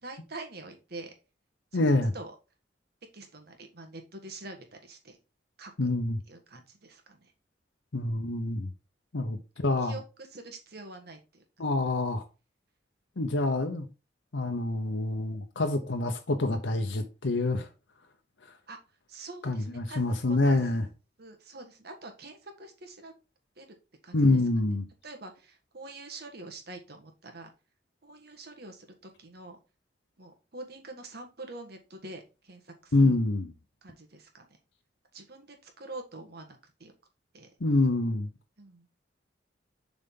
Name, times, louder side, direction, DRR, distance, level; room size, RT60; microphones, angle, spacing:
voice 1, 0.0-1.1 1.7-2.4 3.1-5.2 5.6-5.9 6.3-7.3 9.2-9.3 9.8-11.4 18.7-18.8 19.1-20.0 20.3-20.6 21.2-23.1 23.6-23.7 24.0-24.4 25.0-27.5 28.0-29.6 30.2-33.2 33.8-34.6 35.1-36.9 37.3-37.5 38.6-38.9, right 2 dB, 60° right, 1.6 m, -45 dB
voice 2, 1.7-2.1 5.8-6.2 7.9-8.7 9.1-10.0 11.6-12.2 13.2-13.9 14.3-17.7 19.4-20.8 24.1-24.9 32.9-33.5 37.6-38.3, left 2 dB, 85° left, 0.9 m, -26 dB
7.2 x 4.0 x 3.8 m
head